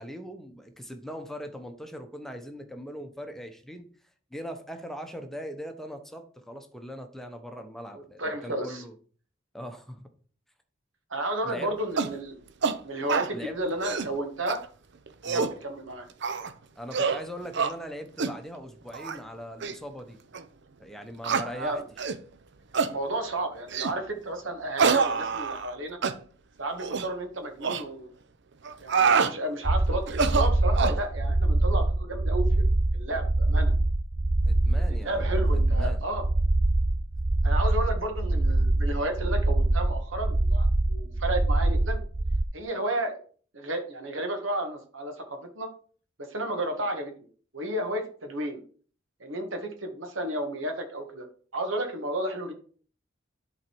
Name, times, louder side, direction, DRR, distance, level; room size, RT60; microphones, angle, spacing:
voice 1, 0.0-3.9 4.3-8.9 9.5-10.1 11.4-11.7 13.3-13.6 15.3-15.5 16.8-20.2 20.8-21.8 34.5-36.0, equal, ahead, 6 dB, 0.9 m, -40 dB
voice 2, 7.9-8.8 11.1-12.3 12.8-14.6 15.3-16.1 21.5-21.8 22.8-26.0 26.6-28.1 28.8-32.6 32.9-33.7 34.7-36.3 37.4-42.0 42.5-43.2 43.5-45.7 46.2-47.1 47.5-48.6 49.2-51.3 51.5-52.5, right 1 dB, 80° right, 5 dB, 1.8 m, -32 dB
sound 1, 12.0-12.2 12.6-12.8 13.1-13.3 13.7-14.1 14.5-14.6 15.1-15.6 16.2-16.5 16.9-17.2 17.5-17.7 18.2-18.4 18.9-19.2 19.6-19.7 20.3-20.4 21.2-21.5 22.0-22.2 22.7-22.9 23.7-24.0 24.8-25.7 26.0-26.2 26.8-27.1 27.6-27.8 28.6-29.3 30.1-31.0, right 5 dB, 65° right, 0.7 m, -26 dB
sound 2, 29.7-42.4, right 2 dB, 20° right, 0.3 m, -24 dB
11.0 x 4.0 x 4.6 m, 0.43 s
head